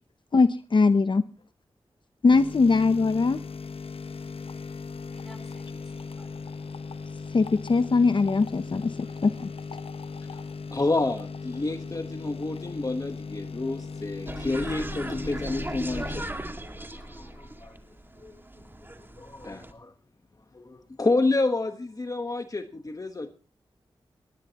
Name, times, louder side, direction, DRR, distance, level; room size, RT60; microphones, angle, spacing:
voice 1, 0.3-1.2 2.2-3.4 7.3-9.5, left 4 dB, 55° left, 12 dB, 0.7 m, -21 dB
sound 1, 2.3-16.2, left 4 dB, 75° left, 1.1 m, -38 dB
voice 2, 5.0-7.4, equal, ahead, 6 dB, 3.9 m, -56 dB
voice 3, 10.7-17.7 18.2-18.4 19.2-19.9 20.5-23.3, left 2 dB, 35° left, 7 dB, 1.3 m, -29 dB
sound 2, 14.3-19.7, right 1 dB, 20° right, 2.1 m, -37 dB
20.5 x 15.5 x 3.0 m, 0.35 s
cardioid pair, 60°, 10 cm